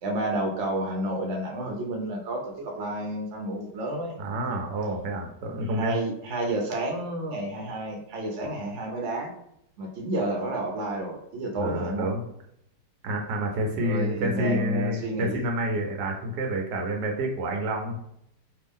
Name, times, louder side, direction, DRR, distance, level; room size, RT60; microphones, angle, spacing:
voice 1, 0.0-4.2 5.8-9.3 9.8-12.1 13.8-15.4, right 1 dB, 55° right, 0 dB, 0.8 m, -30 dB
voice 2, 4.2-6.0 11.6-12.2 13.0-18.0, equal, 75° right, 2 dB, 1.2 m, -28 dB
3.3 x 2.4 x 3.5 m, 0.75 s
omnidirectional pair, 1.9 m